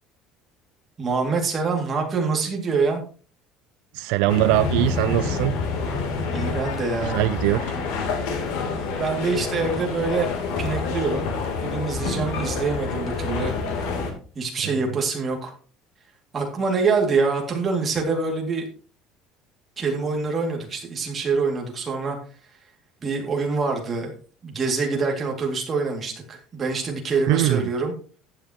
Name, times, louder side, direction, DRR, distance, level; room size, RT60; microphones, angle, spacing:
voice 1, 1.0-3.0 6.3-7.3 8.7-11.3 11.6-13.6 13.9-14.0 14.4-15.5 16.3-18.7 19.8-22.2 23.0-24.1 24.4-27.9, right 4 dB, 20° right, 1 dB, 2.3 m, -25 dB
voice 2, 3.9-5.5 7.0-7.7 27.3-27.6, right 17 dB, 80° right, 15 dB, 0.4 m, -21 dB
sound 1, 4.3-14.1, left 4 dB, 90° left, 3.0 m, -27 dB
14.5 x 8.9 x 2.9 m, 0.39 s
cardioid pair, 175°, 0 cm